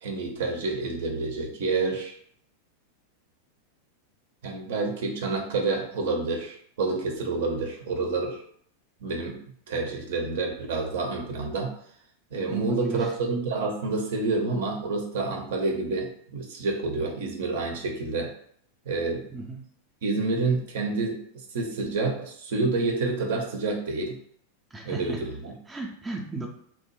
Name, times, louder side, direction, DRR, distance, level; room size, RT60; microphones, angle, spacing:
voice 1, 0.0-2.2 4.4-8.4 9.0-9.4 9.7-11.7 12.3-18.3 18.9-19.3 20.0-21.2 21.5-24.2 24.8-25.6, right 3 dB, 55° right, 2 dB, 0.6 m, -28 dB
voice 2, 12.5-13.1 19.3-19.6 24.7-25.2 25.7-26.5, right 3 dB, 10° right, 1 dB, 0.4 m, -35 dB
2.8 x 2.1 x 3.0 m, 0.62 s
figure-of-eight pair, 90°, 0 cm